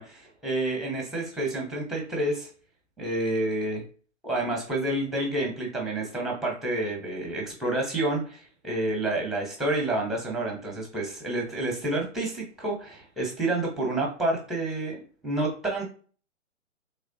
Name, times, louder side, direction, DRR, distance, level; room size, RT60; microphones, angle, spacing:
voice 1, 0.0-2.5 3.0-3.8 4.2-15.0 15.2-15.8, right 2 dB, ahead, 0 dB, 0.8 m, -29 dB
3.4 x 3.1 x 2.6 m, 0.41 s
hypercardioid pair, 125°, 38 cm